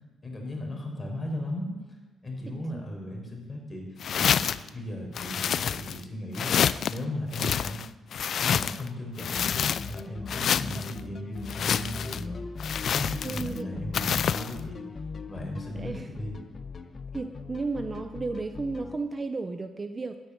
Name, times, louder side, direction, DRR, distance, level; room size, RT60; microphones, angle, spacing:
voice 1, 0.2-1.7 2.2-4.4 4.7-6.6 6.9-7.8 8.4-12.4 12.9-14.8 15.3-16.3, left 1 dB, 25° left, 1 dB, 5.5 m, -36 dB
voice 2, 2.5-2.9 13.2-13.8 14.4-14.5 15.7-16.1 17.1-20.2, right 3 dB, 30° right, 8 dB, 0.8 m, -34 dB
sound 1, 4.0-4.7 5.1-6.0 6.3-7.0 7.3-8.9 9.2-10.0 10.3-10.9 11.5-12.2 12.6-13.6 13.9-14.5, left 8 dB, 60° left, 0.4 m, -28 dB
sound 2, 9.4-19.0, left 4 dB, 40° left, 1.2 m, -40 dB
13.0 x 9.7 x 9.9 m, 1.2 s
cardioid pair, 90°, 0 cm